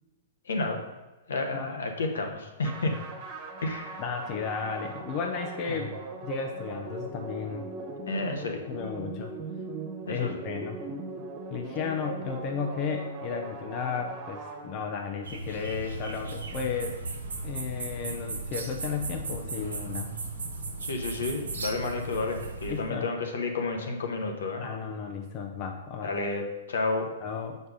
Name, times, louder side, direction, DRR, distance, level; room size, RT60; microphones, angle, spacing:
voice 1, 0.4-0.8 1.3-3.0 3.6-4.0 5.6-5.9 8.1-8.6 10.1-10.4 20.8-24.7 26.0-27.1, left 3 dB, 75° left, 3 dB, 1.1 m, -31 dB
sound 1, 2.6-15.2, right 3 dB, 40° right, 1.3 m, -40 dB
voice 2, 4.0-6.0 6.2-7.7 8.7-9.3 10.1-10.8 11.5-17.0 17.4-20.1 22.7-23.1 24.6-26.1 27.2-27.6, left 6 dB, 40° left, 3 dB, 0.7 m, -34 dB
sound 2, 15.2-22.8, right 3 dB, 85° right, 1.1 m, -36 dB
6.7 x 4.4 x 5.0 m, 1.1 s
hypercardioid pair, 115°, 0 cm